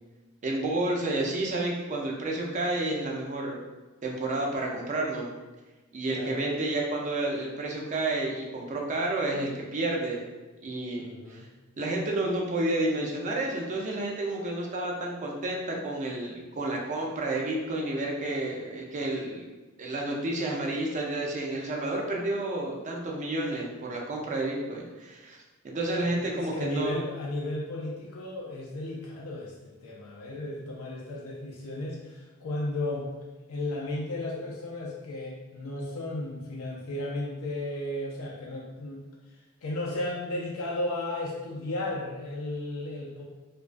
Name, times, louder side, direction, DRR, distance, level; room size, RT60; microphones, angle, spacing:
voice 1, 0.4-3.6 4.0-5.3 5.9-10.2 10.6-11.5 11.8-19.4 19.8-25.4 25.6-27.0, right 2 dB, 35° right, -1 dB, 0.4 m, -30 dB
voice 2, 6.1-6.5 11.0-11.5 20.5-20.7 26.0-33.1 33.5-39.0 39.6-43.2, left 1 dB, 85° left, -3 dB, 0.4 m, -34 dB
2.3 x 2.2 x 2.4 m, 1.2 s
head